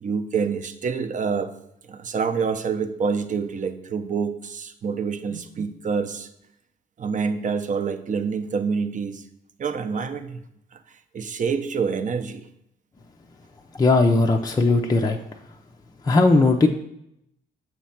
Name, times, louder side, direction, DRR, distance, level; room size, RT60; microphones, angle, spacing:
voice 1, 0.0-1.5 1.9-6.3 7.0-9.2 9.6-10.4 10.7-10.8 11.1-12.5, right 5 dB, 40° right, 9 dB, 0.7 m, -27 dB
voice 2, 13.8-15.2 16.0-16.7, left 3 dB, 20° left, 2 dB, 0.5 m, -18 dB
7.1 x 3.1 x 5.7 m, 0.79 s
cardioid pair, 90°, 20 cm